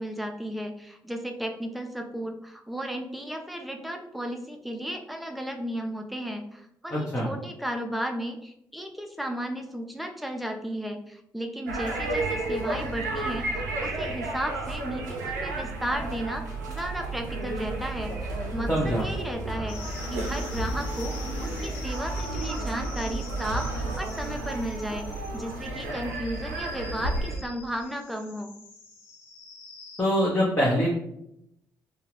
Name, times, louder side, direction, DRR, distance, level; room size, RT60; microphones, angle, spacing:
voice 1, 0.0-25.1 25.3-28.5, equal, ahead, 3 dB, 0.5 m, -34 dB
voice 2, 6.9-7.3 18.7-19.0 30.0-30.9, equal, 25° left, -5 dB, 0.8 m, -24 dB
sound 1, 11.7-27.4, right 2 dB, 90° right, 0.4 m, -32 dB
sound 2, 19.7-30.0, left 3 dB, 75° left, 0.5 m, -44 dB
2.3 x 2.3 x 3.2 m, 0.77 s
hypercardioid pair, 40°, 9 cm